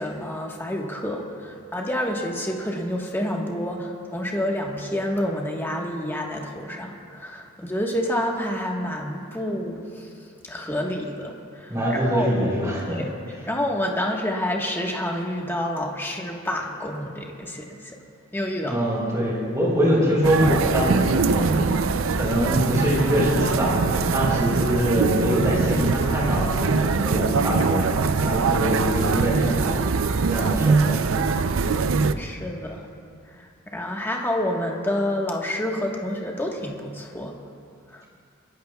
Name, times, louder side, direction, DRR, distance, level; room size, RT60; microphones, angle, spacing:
voice 1, 0.0-10.1 10.4-12.3 12.9-17.9 18.3-18.9 32.2-32.8 33.3-37.3 37.9-38.0, left 1 dB, 10° left, 0 dB, 1.3 m, -28 dB
voice 2, 11.7-13.1 13.3-13.4 18.6-21.6 22.1-23.7 24.1-27.8 28.2-29.8 30.3-31.0, equal, 15° right, -5 dB, 4.2 m, -23 dB
sound 1, 20.2-32.1, right 4 dB, 85° right, 0.5 m, -22 dB
29.0 x 13.0 x 2.3 m, 2.4 s
head